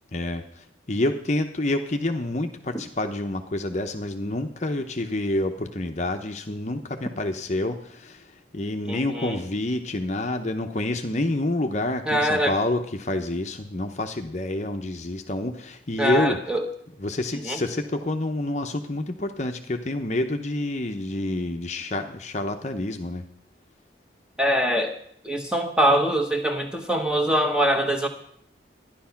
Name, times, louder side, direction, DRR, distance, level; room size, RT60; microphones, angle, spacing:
voice 1, 0.1-16.4 17.0-23.2, left 1 dB, 40° left, 6 dB, 0.8 m, -28 dB
voice 2, 8.9-9.4 12.1-12.6 16.0-16.6 17.4-17.6 24.4-24.9 25.2-28.1, equal, 5° right, 4 dB, 1.2 m, -23 dB
13.0 x 10.5 x 5.8 m, 0.67 s
head